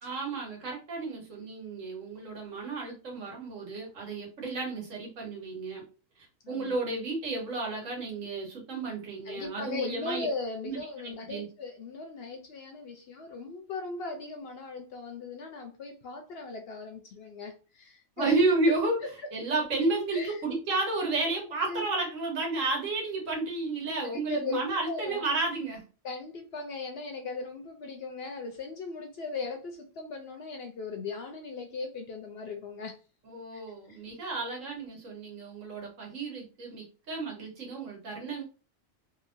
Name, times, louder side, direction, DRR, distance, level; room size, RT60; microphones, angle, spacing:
voice 1, 0.0-5.8 6.5-10.3 10.6-11.5 18.2-19.0 19.3-25.8 33.2-38.4, right 3 dB, 80° right, 0 dB, 1.5 m, -32 dB
voice 2, 6.4-6.7 9.3-18.4 20.1-20.3 21.6-21.8 24.0-25.2 26.0-33.0 33.5-33.6 33.9-34.0, left 3 dB, 65° left, 4 dB, 0.7 m, -38 dB
2.8 x 2.7 x 2.5 m, 0.34 s
omnidirectional pair, 1.3 m